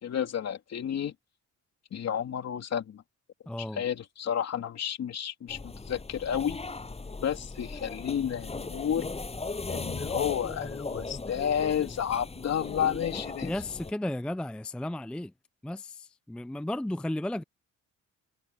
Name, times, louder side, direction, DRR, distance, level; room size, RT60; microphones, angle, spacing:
voice 1, 0.0-1.1 1.9-3.0 3.6-6.6 7.2-9.1 9.7-13.5, left 9 dB, 55° left, 3.4 m, -31 dB
voice 2, 3.5-3.8 13.4-15.3 15.6-17.4, left 1 dB, 5° left, 0.4 m, -34 dB
sound 1, 5.5-13.9, left 3 dB, 20° left, 7.2 m, -37 dB
cardioid pair, 135°, 31 cm